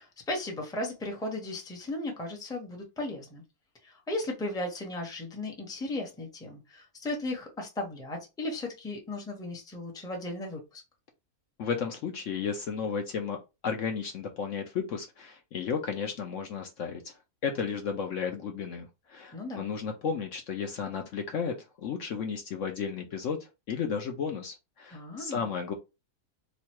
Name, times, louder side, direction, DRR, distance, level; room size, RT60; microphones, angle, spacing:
voice 1, 0.0-3.4 3.8-10.8 19.3-19.7 24.9-25.5, left 2 dB, 5° left, 0.7 m, -36 dB
voice 2, 11.6-13.4 13.6-17.1 17.4-25.7, left 6 dB, 65° left, 0.9 m, -33 dB
3.1 x 2.3 x 4.3 m
omnidirectional pair, 1.6 m